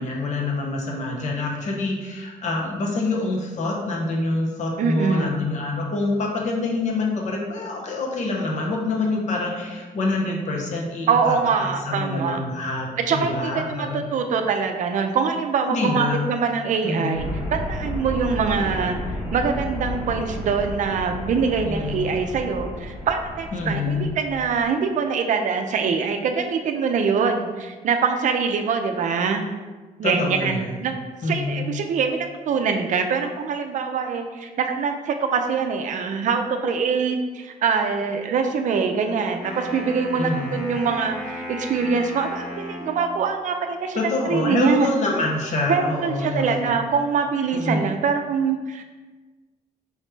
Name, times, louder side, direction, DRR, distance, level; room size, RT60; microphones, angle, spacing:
voice 1, 0.0-14.0 15.7-16.3 16.8-17.3 21.6-22.0 23.5-24.1 30.0-30.6 31.2-31.7 40.2-40.6 43.9-46.7 47.5-47.9, left 2 dB, 50° left, 0 dB, 0.8 m, -26 dB
voice 2, 4.8-5.3 11.1-12.4 13.0-29.4 30.0-30.9 31.2-44.9 45.7-48.8, right 5 dB, 55° right, 5 dB, 0.4 m, -24 dB
sound 1, 17.1-24.6, left 1 dB, 35° left, 1.3 m, -32 dB
Wind instrument woodwind instrument, 39.3-43.3, equal, 5° left, 0.8 m, -35 dB
4.7 x 3.1 x 3.3 m, 1.3 s
wide cardioid pair, 165°, 15 cm